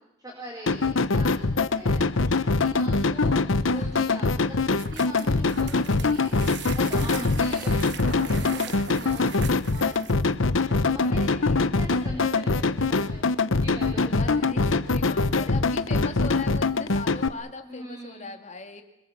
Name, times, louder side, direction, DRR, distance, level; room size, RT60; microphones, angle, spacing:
voice 1, 0.2-10.1 10.6-11.3 11.6-13.3 13.6-14.4 17.6-18.3, equal, 20° right, 0 dB, 4.2 m, -42 dB
sound 1, 0.7-17.3, left 3 dB, 75° left, 0.9 m, -23 dB
voice 2, 3.7-4.2 5.3-5.4 6.9-7.3 10.8-11.9 13.9-18.8, left 2 dB, 35° left, 5 dB, 2.3 m, -39 dB
sound 2, 4.7-10.3, right 7 dB, 55° right, 1.0 m, -40 dB
26.0 x 23.0 x 7.4 m, 0.87 s
head